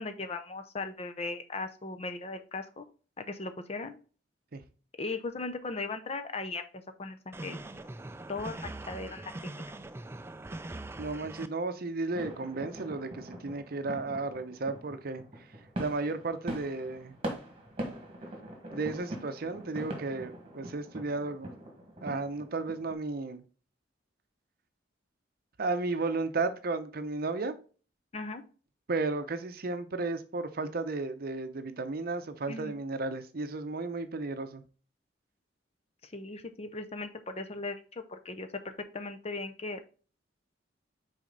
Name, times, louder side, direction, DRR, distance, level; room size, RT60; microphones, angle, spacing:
voice 1, 0.0-2.9 3.2-4.0 5.0-6.6 7.0-7.7 8.3-9.5 28.1-28.4 32.5-32.7 36.0-39.8, left 3 dB, 35° left, 0.6 m, -38 dB
sound 1, 7.3-11.5, right 2 dB, 15° right, 0.3 m, -42 dB
voice 2, 11.0-15.2 15.8-17.2 18.7-21.5 22.0-23.4 25.6-27.6 28.9-34.6, right 3 dB, 55° right, 0.7 m, -34 dB
sound 2, 12.1-22.9, right 1 dB, 30° right, 1.6 m, -42 dB
6.3 x 4.2 x 3.9 m
head